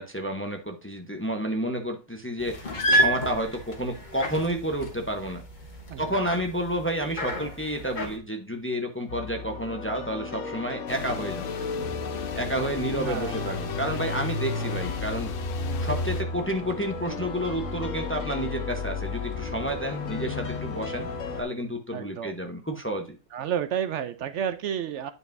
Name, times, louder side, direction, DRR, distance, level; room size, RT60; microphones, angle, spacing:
voice 1, 0.0-5.4 6.0-11.5 12.4-15.3 15.8-21.1 21.4-23.2, right 1 dB, 10° left, 4 dB, 0.8 m, -30 dB
sound 1, 2.4-8.2, equal, 40° left, 1.2 m, -30 dB
voice 2, 5.9-6.3 11.7-12.0 12.9-13.3 21.9-22.3 23.3-25.1, right 9 dB, 70° right, 10 dB, 0.9 m, -31 dB
sound 2, 9.1-21.4, left 3 dB, 85° left, 1.4 m, -33 dB
sound 3, 10.9-16.2, left 8 dB, 60° left, 0.6 m, -37 dB
9.7 x 5.2 x 2.6 m, 0.31 s
omnidirectional pair, 1.3 m